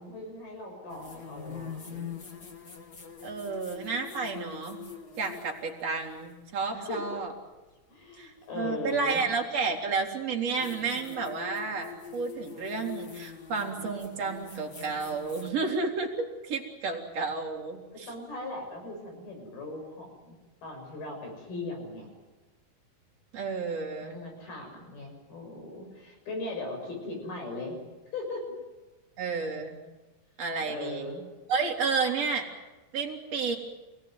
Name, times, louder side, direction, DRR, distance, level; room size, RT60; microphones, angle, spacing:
voice 1, 0.0-2.1 6.7-7.2 7.9-9.3 18.1-20.4 20.6-22.1 24.0-27.8 28.1-28.4 30.7-31.3, left 2 dB, 70° left, 2 dB, 8.8 m, -39 dB
sound 1, 0.9-6.4 8.4-8.5 10.6-15.5, left 7 dB, 35° left, 1.7 m, -44 dB
voice 2, 3.2-4.8 5.2-7.3 8.2-18.1 23.3-24.2 29.2-29.8 30.4-31.1 31.5-32.5 32.9-33.6, right 4 dB, 40° right, 0 dB, 4.1 m, -31 dB
28.0 x 18.5 x 9.5 m, 1.1 s
omnidirectional pair, 4.6 m